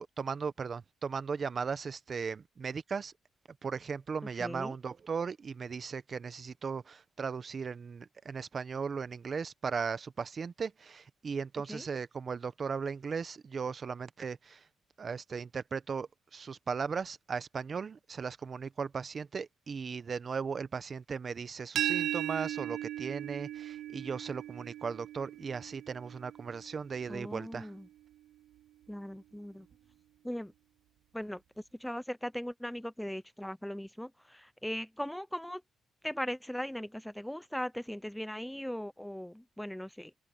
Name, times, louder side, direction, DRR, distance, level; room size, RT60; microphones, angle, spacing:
voice 1, 0.0-3.1 3.6-14.6 15.0-27.7, right 5 dB, 40° right, 1.0 m, -37 dB
voice 2, 4.4-4.8 11.7-11.9 27.1-27.9 28.9-29.7 30.2-30.5 31.1-31.4 31.8-35.6 36.0-40.1, equal, 5° left, 0.5 m, -39 dB
sound 1, 21.8-27.5, right 12 dB, 75° right, 0.4 m, -37 dB
open air
cardioid pair, 90°, 0 cm